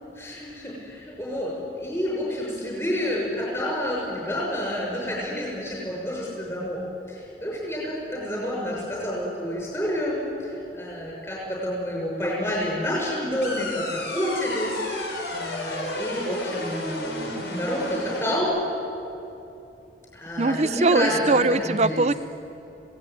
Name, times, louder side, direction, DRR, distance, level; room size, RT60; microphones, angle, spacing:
voice 1, 0.2-6.8 7.1-18.5 20.1-21.4 21.6-22.0, equal, 15° left, -4 dB, 6.2 m, -29 dB
sound 1, 13.4-18.4, left 1 dB, 80° left, 4.1 m, -32 dB
voice 2, 20.4-22.1, right 3 dB, 40° right, 14 dB, 0.6 m, -21 dB
27.0 x 17.0 x 9.3 m, 2.9 s
head